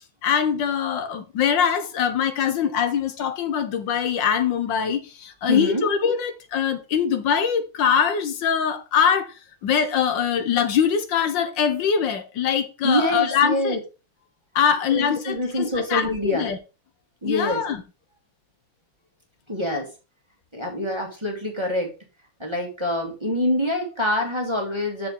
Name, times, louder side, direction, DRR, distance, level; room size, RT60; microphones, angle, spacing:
voice 1, 0.2-9.3 9.6-13.8 14.5-16.6 17.2-17.8, left 7 dB, 75° left, 1.5 m, -23 dB
voice 2, 5.5-5.9 12.8-13.8 14.9-16.5 17.2-17.6 19.5-19.9 20.5-21.9 22.4-25.1, left 1 dB, 15° right, 1.5 m, -25 dB
6.8 x 4.4 x 5.2 m
omnidirectional pair, 2.1 m